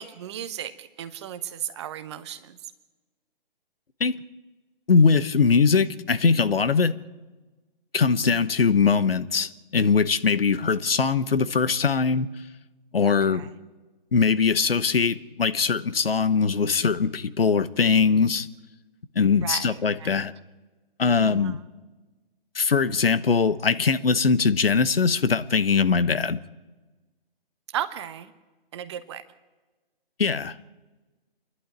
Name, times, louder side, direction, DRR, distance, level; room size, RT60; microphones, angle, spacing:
voice 1, 0.0-2.6 8.2-8.5 13.0-13.5 19.4-20.2 21.2-21.6 27.7-28.3 28.7-29.2, right 10 dB, 30° right, 12 dB, 1.0 m, -35 dB
voice 2, 4.9-6.9 7.9-12.3 12.9-13.5 14.1-18.5 19.1-20.3 21.0-21.6 22.5-26.4 30.2-30.6, left 5 dB, 75° left, 14 dB, 1.1 m, -21 dB
27.5 x 11.5 x 9.0 m, 1.2 s
figure-of-eight pair, 140°, 29 cm